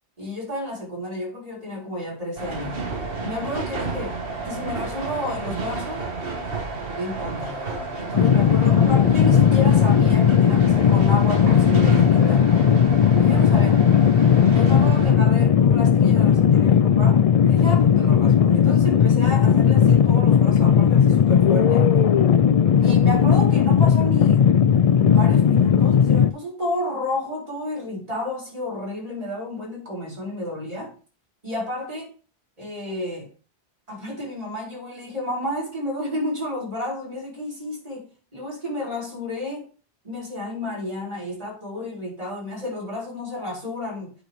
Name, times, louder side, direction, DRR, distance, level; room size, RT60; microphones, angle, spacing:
voice 1, 0.2-2.8 3.2-6.0 6.9-12.5 13.1-13.8 14.5-21.9 22.8-24.5 24.8-30.9 31.4-32.1 32.6-33.3 33.9-39.6 40.0-44.1, left 1 dB, 35° right, -5 dB, 4.3 m, -31 dB
sound 1, 2.4-15.1, right 3 dB, 60° right, 1.7 m, -31 dB
sound 2, 8.1-26.3, left 8 dB, 55° left, 0.4 m, -17 dB
8.8 x 6.3 x 3.5 m, 0.38 s
omnidirectional pair, 1.1 m